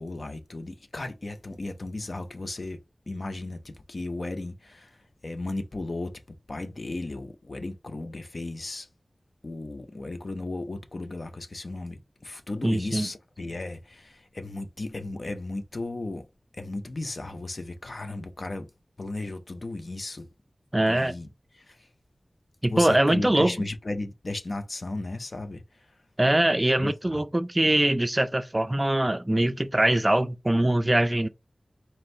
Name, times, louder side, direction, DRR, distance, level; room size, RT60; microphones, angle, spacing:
voice 1, 0.0-2.8 3.1-5.0 5.2-6.2 6.5-8.9 9.4-16.3 16.5-18.7 19.0-20.3 20.9-21.3 21.5-21.9 22.7-25.9 26.8-27.2, left 2 dB, 60° left, 0.6 m, -35 dB
voice 2, 12.6-13.1 20.7-21.2 22.6-23.6 26.2-31.3, right 1 dB, 25° right, 0.4 m, -23 dB
4.4 x 2.6 x 3.2 m
wide cardioid pair, 55°, 0 cm